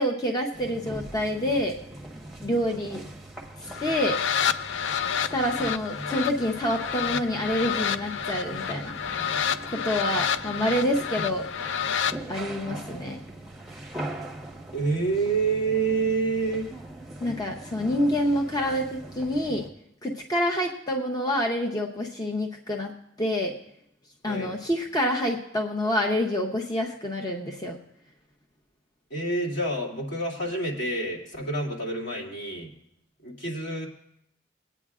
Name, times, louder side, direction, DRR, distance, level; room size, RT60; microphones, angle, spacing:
voice 1, 0.0-1.8 2.4-3.0 3.8-4.2 5.2-8.9 9.7-11.5 12.3-13.2 17.2-19.6 20.0-22.9 23.2-23.5 24.2-27.8, equal, 20° left, 1 dB, 0.8 m, -27 dB
sound 1, 0.5-19.7, right 1 dB, ahead, 1.1 m, -41 dB
sound 2, 3.7-12.2, left 8 dB, 90° left, 0.4 m, -29 dB
voice 2, 14.7-16.7 24.2-24.5 29.1-32.7 33.2-33.9, right 3 dB, 75° left, -3 dB, 2.6 m, -28 dB
21.5 x 9.1 x 2.4 m, 0.77 s
head